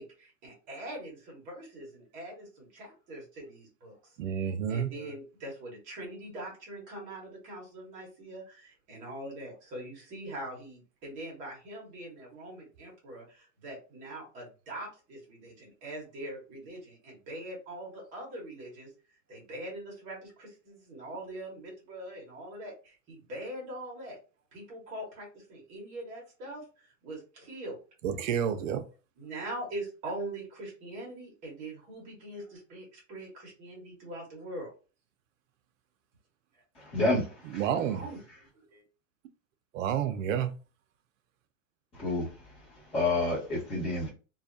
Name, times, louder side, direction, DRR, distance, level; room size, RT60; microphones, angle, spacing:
voice 1, 0.0-18.9 19.3-24.2 24.5-27.8 29.2-34.7 37.8-38.2 38.5-38.8, right 1 dB, 20° right, 0.8 m, -42 dB
voice 2, 4.2-4.9 28.0-28.8 37.5-38.0 39.7-40.5, right 9 dB, 75° right, 0.5 m, -29 dB
voice 3, 36.7-37.6 42.0-42.3 42.9-44.1, left 2 dB, 15° left, 1.4 m, -29 dB
2.7 x 2.3 x 2.4 m
supercardioid pair, 170°, 40 cm